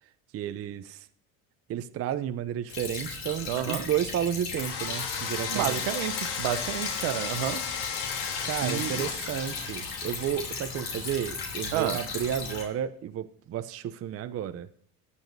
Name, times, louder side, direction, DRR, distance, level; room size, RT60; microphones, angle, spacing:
voice 1, 0.3-1.1 1.7-5.8 8.4-14.7, right 10 dB, 30° right, 10 dB, 0.6 m, -32 dB
Stream / Trickle dribble, 2.7-12.6, left 4 dB, 80° left, 2.8 m, -36 dB
voice 2, 3.5-3.9 5.5-7.6 8.6-9.0 11.7-12.0, right 11 dB, 65° right, 10 dB, 1.0 m, -30 dB
sound 1, 4.6-12.7, left 7 dB, 55° left, 1.6 m, -36 dB
19.5 x 7.1 x 2.6 m, 0.66 s
hypercardioid pair, 80°, 46 cm